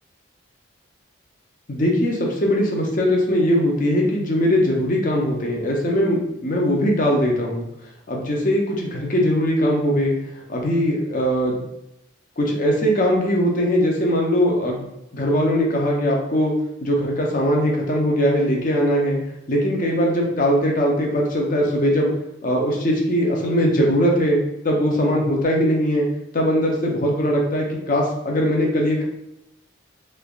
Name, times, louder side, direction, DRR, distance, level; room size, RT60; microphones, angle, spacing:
voice 1, 1.7-7.6 8.1-10.1 10.5-11.6 12.4-14.8 15.1-16.5 16.8-19.2 19.5-22.1 22.4-26.1 26.3-29.0, equal, 40° left, -1 dB, 0.6 m, -20 dB
3.2 x 2.4 x 2.2 m, 0.83 s
head